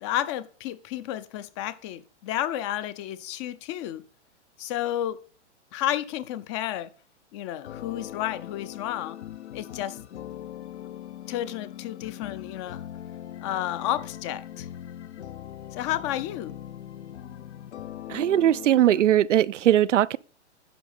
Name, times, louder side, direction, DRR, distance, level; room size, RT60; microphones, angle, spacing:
voice 1, 0.0-4.0 4.6-5.2 5.7-6.9 7.3-9.2 9.5-10.0 11.3-12.8 13.4-14.7 15.7-16.5, left 12 dB, 25° left, 0.4 m, -31 dB
sound 1, 7.6-19.0, left 11 dB, 70° left, 0.7 m, -41 dB
voice 2, 18.1-20.2, right 12 dB, 90° right, 0.5 m, -20 dB
11.0 x 4.8 x 5.5 m
hypercardioid pair, 125°, 35 cm